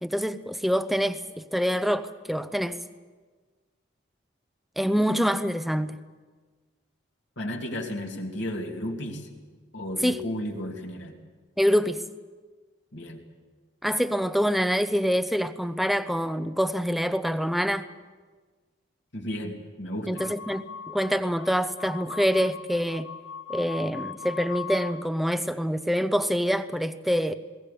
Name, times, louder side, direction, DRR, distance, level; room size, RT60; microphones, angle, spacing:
voice 1, 0.0-2.8 4.8-6.0 10.0-10.2 11.6-12.0 13.8-17.9 20.1-23.1 23.5-27.3, equal, ahead, 11 dB, 0.7 m, -26 dB
voice 2, 7.4-9.3 9.7-11.2 12.9-13.2 19.1-20.2, left 1 dB, 65° left, 1 dB, 3.0 m, -33 dB
sound 1, 20.1-25.0, left 6 dB, 90° left, 2.1 m, -40 dB
20.5 x 18.0 x 8.7 m, 1.4 s
head